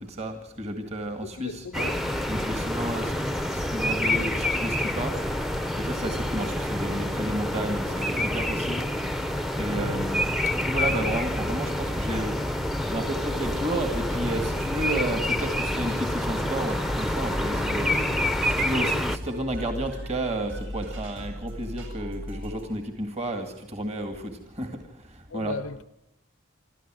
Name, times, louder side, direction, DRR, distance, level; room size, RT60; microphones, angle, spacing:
voice 1, 0.2-1.6 2.3-3.1 3.5-5.1 5.8-8.8 9.6-10.2 10.6-12.3 12.8-18.0 18.6-24.3 24.6-24.7 25.3-25.5, right 1 dB, 30° right, 6 dB, 2.0 m, -31 dB
voice 2, 1.2-2.0 9.7-10.1 25.3-25.8, left 3 dB, 80° left, 15 dB, 0.7 m, -36 dB
sound 1, 1.7-19.2, left 1 dB, ahead, 0.7 m, -27 dB
sound 2, 13.3-22.8, equal, 70° right, 7.4 m, -38 dB
26.0 x 13.5 x 7.6 m, 0.89 s
head